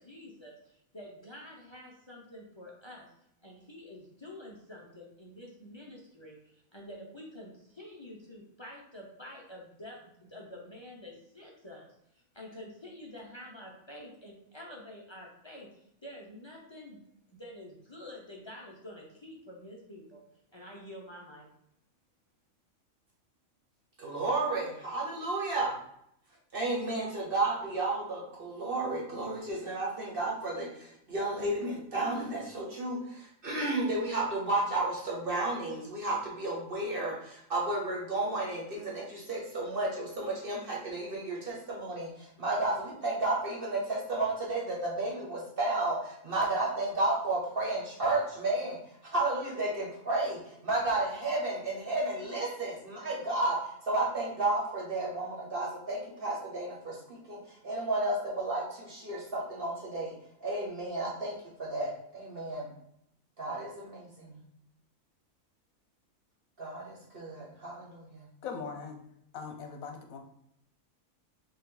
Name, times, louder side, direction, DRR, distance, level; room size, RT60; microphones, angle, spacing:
voice 1, 0.0-3.1 3.4-11.9 12.1-17.0 17.3-20.2 20.5-21.5, left 1 dB, 30° left, -2 dB, 0.6 m, -48 dB
voice 2, 24.0-25.7 26.5-48.8 49.0-60.1 60.4-61.3 61.6-62.7 63.4-64.4 66.6-68.3, right 2 dB, 45° right, -3 dB, 1.1 m, -32 dB
voice 3, 68.4-69.0 69.3-70.2, left 5 dB, 85° left, 4 dB, 1.2 m, -40 dB
5.1 x 2.5 x 3.9 m, 0.74 s
omnidirectional pair, 1.4 m